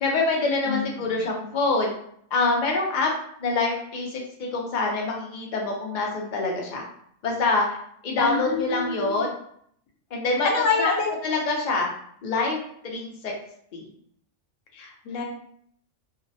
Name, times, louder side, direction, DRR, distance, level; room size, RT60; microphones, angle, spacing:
voice 1, 0.0-1.9 2.3-3.1 3.4-6.8 7.2-7.7 8.0-9.3 10.1-10.5 10.8-10.9 11.2-11.9 12.2-13.3 13.7-13.9, left 3 dB, 50° left, 0 dB, 0.6 m, -25 dB
voice 2, 0.7-1.2 8.2-9.3 10.3-11.1 14.7-15.2, left 4 dB, 85° left, 1 dB, 1.0 m, -27 dB
2.6 x 2.1 x 2.6 m, 0.67 s
omnidirectional pair, 1.3 m